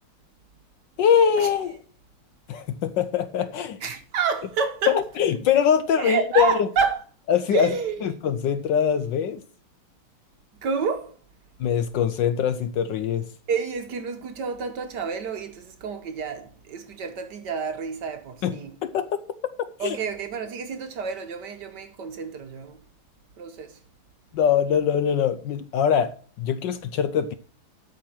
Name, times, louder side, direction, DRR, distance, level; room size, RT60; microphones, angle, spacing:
voice 1, 1.0-1.8 2.5-3.8 4.9-6.7 7.3-7.7 8.0-9.4 11.6-13.3 18.4-19.1 19.8-20.0 24.3-27.3, left 8 dB, 70° left, 1.2 m, -23 dB
voice 2, 3.8-5.0 6.0-7.0 7.5-8.1 10.6-11.1 13.5-18.7 19.8-22.8 23.4-23.8, right 6 dB, 60° right, 1.3 m, -29 dB
12.5 x 5.1 x 6.1 m
omnidirectional pair, 2.4 m